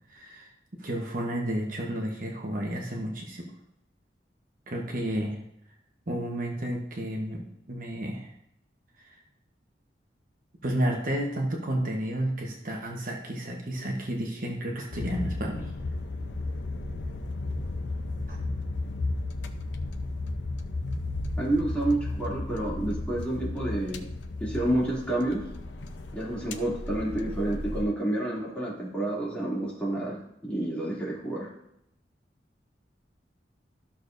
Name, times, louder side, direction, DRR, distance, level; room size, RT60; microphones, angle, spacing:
voice 1, 0.1-0.5 0.8-3.5 4.7-5.4 6.1-8.3 9.0-9.2 10.6-15.7 18.3-18.4, right 1 dB, 50° right, 0 dB, 1.1 m, -31 dB
sound 1, 14.9-27.8, left 2 dB, 90° left, 0.7 m, -34 dB
voice 2, 21.4-24.1 24.4-25.4 26.1-30.2 30.4-31.5, right 1 dB, 5° left, -7 dB, 2.6 m, -29 dB
13.0 x 6.5 x 2.6 m, 0.77 s
head